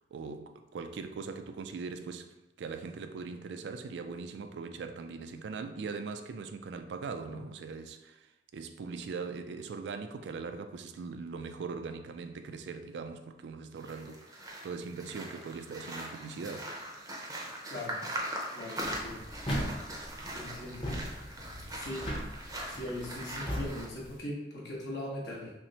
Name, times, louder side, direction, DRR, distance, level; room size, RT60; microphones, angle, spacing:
voice 1, 0.0-16.8, right 4 dB, 75° right, 0.3 m, -41 dB
sound 1, 13.8-23.9, right 1 dB, 20° right, 0.6 m, -41 dB
voice 2, 18.5-19.2 20.3-20.9 21.7-22.2 22.7-25.5, left 1 dB, 75° left, 1.1 m, -40 dB
sound 2, 18.8-24.2, equal, 30° left, 0.7 m, -38 dB
5.7 x 2.1 x 2.8 m
head